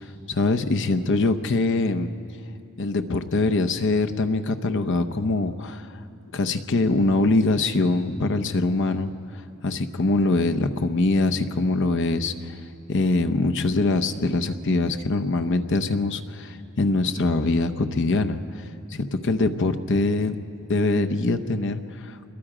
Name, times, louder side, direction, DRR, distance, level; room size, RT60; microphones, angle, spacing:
voice 1, 0.3-2.1 2.8-5.9 6.3-9.1 9.6-12.6 12.9-18.4 18.9-20.4 20.7-22.3, left 2 dB, 60° left, 7 dB, 0.8 m, -23 dB
27.0 x 22.0 x 5.0 m, 2.9 s
head